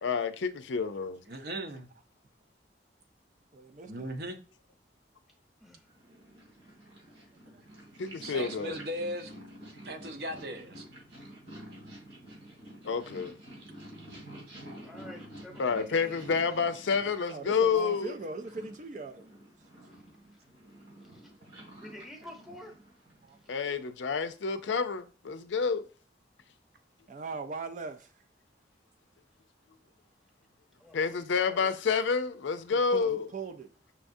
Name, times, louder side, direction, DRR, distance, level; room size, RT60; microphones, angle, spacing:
voice 1, 0.0-1.2 8.0-8.8 12.8-13.3 15.6-18.1 23.5-25.9 30.9-33.3, left 5 dB, 85° left, 0.5 m, -29 dB
voice 2, 1.3-1.9 3.9-4.4 8.2-9.3 9.8-10.9, equal, 60° right, 0.8 m, -37 dB
voice 3, 3.5-4.1 7.5-7.6 17.3-19.3 23.2-23.4 27.1-28.1 32.7-33.7, right 4 dB, 40° right, 0.4 m, -40 dB
Purr, 5.9-23.5, right 1 dB, 90° right, 2.5 m, -50 dB
voice 4, 14.8-16.3 21.1-21.2 21.8-22.7 30.8-31.1 31.4-31.7, left 1 dB, ahead, 0.9 m, -48 dB
5.8 x 3.6 x 2.6 m
head